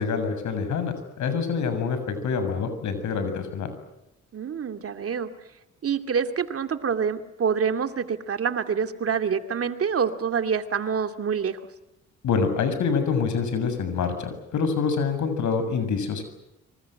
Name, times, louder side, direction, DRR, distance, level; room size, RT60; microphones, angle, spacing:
voice 1, 0.0-3.7 12.2-16.2, left 5 dB, 70° left, 9 dB, 7.2 m, -26 dB
voice 2, 4.3-5.3 5.8-11.6, right 6 dB, 50° right, 8 dB, 2.5 m, -26 dB
26.5 x 25.5 x 7.9 m, 0.89 s
cardioid pair, 90°, 30 cm